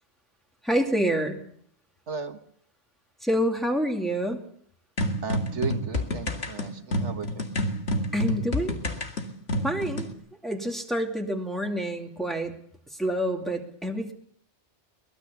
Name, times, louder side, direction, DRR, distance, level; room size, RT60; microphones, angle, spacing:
voice 1, 0.6-1.4 3.2-4.4 8.1-8.8 9.6-10.1 10.4-12.5 12.9-14.1, equal, ahead, 1 dB, 2.5 m, -27 dB
voice 2, 2.1-2.4 5.2-7.5, right 6 dB, 80° right, 7 dB, 1.7 m, -35 dB
sound 1, 5.0-10.1, left 1 dB, 65° left, 2.4 m, -28 dB
23.0 x 20.0 x 7.0 m, 0.66 s
omnidirectional pair, 1.2 m